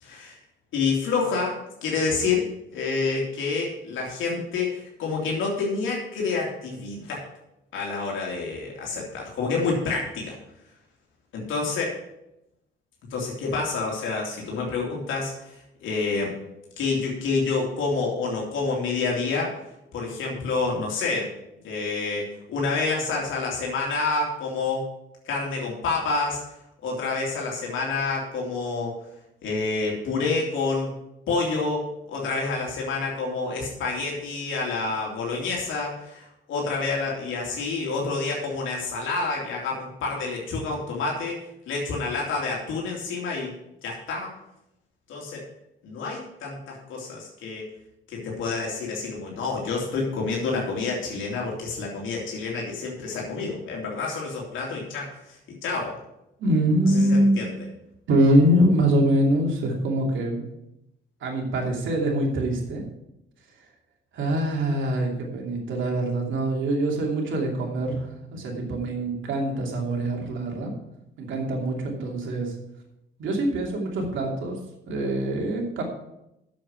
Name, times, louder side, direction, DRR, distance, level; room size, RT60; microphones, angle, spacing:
voice 1, 0.0-0.4 0.7-7.3 7.7-10.4 11.3-12.0 13.1-16.3 16.8-19.6 19.9-21.3 21.6-24.9 25.2-26.4 26.8-29.0 29.4-30.9 31.3-41.4 41.7-43.5 43.8-44.3 45.1-45.4 45.8-47.7 48.1-56.0 56.9-57.6, left 4 dB, 85° left, -2 dB, 2.7 m, -28 dB
voice 2, 56.4-57.4 58.1-60.4 61.2-62.8 64.1-70.7 71.2-72.5 73.2-74.6 74.9-75.8, right 1 dB, 75° right, 0 dB, 2.8 m, -24 dB
7.7 x 7.1 x 7.6 m, 0.86 s
cardioid pair, 90°, 20 cm